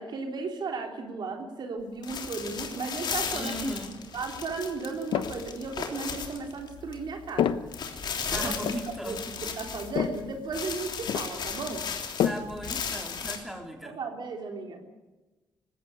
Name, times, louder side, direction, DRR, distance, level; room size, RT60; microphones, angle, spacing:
voice 1, 0.0-3.5 4.1-7.6 8.3-8.5 9.1-11.9 13.8-14.8, right 4 dB, 60° right, 3 dB, 3.5 m, -35 dB
sound 1, 2.0-6.9 7.3-7.4 7.7-10.2 10.5-13.4, left 6 dB, 60° left, 3.3 m, -35 dB
voice 2, 3.3-4.0 8.3-9.4 12.2-14.0, equal, 5° right, 2 dB, 3.9 m, -37 dB
sound 2, 4.9-5.5 6.1-13.2, left 9 dB, 80° left, 1.0 m, -33 dB
20.0 x 16.5 x 9.6 m, 1.1 s
cardioid pair, 85°, 8 cm